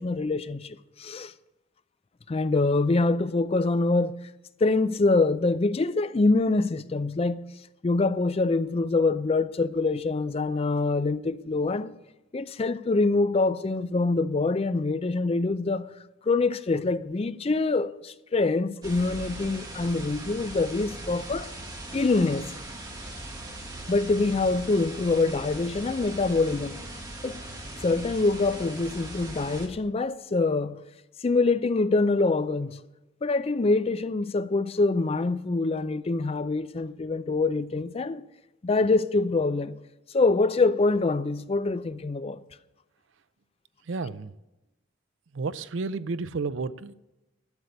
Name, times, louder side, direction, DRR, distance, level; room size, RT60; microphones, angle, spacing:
voice 1, 0.0-1.3 2.3-4.1 4.6-7.4 7.8-12.0 12.3-15.9 16.3-21.5 21.9-22.6 23.9-26.8 27.2-27.4 27.8-30.8 31.2-32.8 33.2-38.2 38.6-39.8 40.1-42.4, left 3 dB, 30° left, 0.4 m, -25 dB
sound 1, 18.8-29.7, right 1 dB, 20° right, 1.9 m, -40 dB
voice 2, 43.9-44.3 45.3-46.9, right 4 dB, 75° right, 0.5 m, -31 dB
11.5 x 6.7 x 9.6 m
head